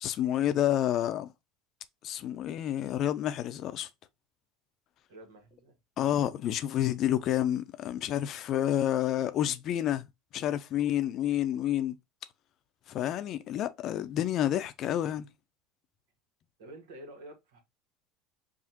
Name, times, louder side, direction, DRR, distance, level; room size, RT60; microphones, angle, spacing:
voice 1, 0.0-1.3 2.0-3.9 6.0-10.1 10.3-12.0 12.9-15.3, left 11 dB, 50° left, 0.5 m, -29 dB
voice 2, 5.1-5.8 16.6-17.6, right 1 dB, 75° right, 1.6 m, -49 dB
4.9 x 2.7 x 2.9 m
hypercardioid pair, 80°, 0 cm